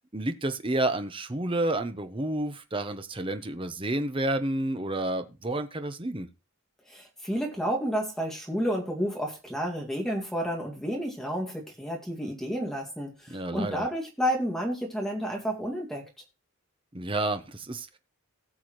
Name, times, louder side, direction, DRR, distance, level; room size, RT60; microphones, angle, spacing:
voice 1, 0.1-6.3 13.3-13.9 16.9-18.0, right 1 dB, 25° right, 0.9 m, -30 dB
voice 2, 6.9-16.0, equal, ahead, 2.1 m, -31 dB
18.0 x 7.0 x 3.1 m
head